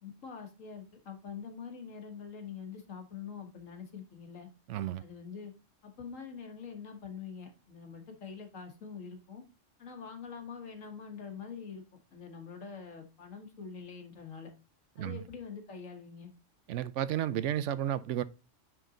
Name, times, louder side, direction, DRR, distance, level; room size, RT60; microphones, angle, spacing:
voice 1, 0.0-4.5 5.0-5.5 5.8-9.4 9.8-11.8 12.1-14.5 15.0-16.3, left 6 dB, 85° left, 1.8 m, -45 dB
voice 2, 4.7-5.0 15.0-15.2 16.7-18.2, right 11 dB, 75° right, 0.9 m, -32 dB
9.2 x 4.0 x 3.9 m
omnidirectional pair, 1.3 m